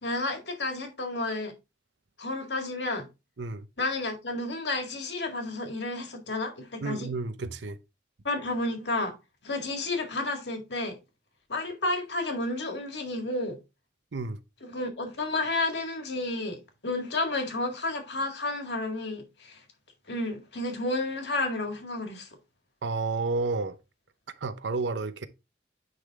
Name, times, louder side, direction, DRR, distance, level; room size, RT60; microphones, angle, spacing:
voice 1, 0.0-1.5 2.2-3.1 3.8-7.1 8.2-9.1 9.4-11.0 11.5-13.6 14.6-19.6 20.1-22.3, left 2 dB, 75° left, 1.9 m, -31 dB
voice 2, 6.8-7.8 14.1-14.4 22.8-23.8 24.4-25.3, right 3 dB, 80° right, 0.7 m, -31 dB
9.5 x 3.9 x 3.5 m
head